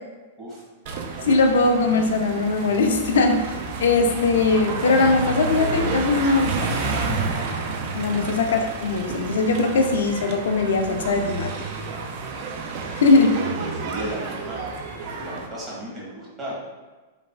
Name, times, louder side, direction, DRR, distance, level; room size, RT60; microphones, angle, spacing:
sound 1, 0.9-15.5, right 4 dB, 55° right, 0.3 m, -30 dB
voice 1, 1.2-3.5 3.8-6.7 7.9-11.5 12.9-13.3, left 3 dB, 75° left, 4 dB, 0.4 m, -20 dB
voice 2, 13.3-14.7 15.0-16.6, right 1 dB, 25° right, -6 dB, 1.1 m, -34 dB
3.2 x 2.3 x 2.2 m, 1.3 s
hypercardioid pair, 110°, 0 cm